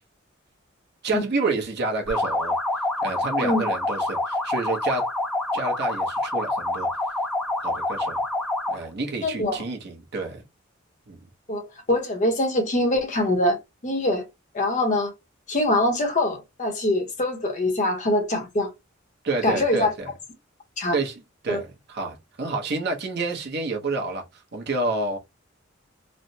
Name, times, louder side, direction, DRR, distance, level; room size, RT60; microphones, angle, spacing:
voice 1, 1.0-2.6 3.0-5.0 5.5-6.9 7.6-8.2 8.7-10.4 11.1-11.2 19.2-20.1 20.9-25.2, right 3 dB, 55° right, 0.8 m, -29 dB
sound 1, 2.1-8.9, left 2 dB, ahead, 0.4 m, -27 dB
voice 2, 9.2-9.6 11.5-13.6 13.8-14.2 14.5-15.1 15.5-18.7 19.4-19.9 20.8-21.0 21.5-21.6, left 1 dB, 40° left, 0.8 m, -23 dB
3.2 x 2.0 x 2.7 m
head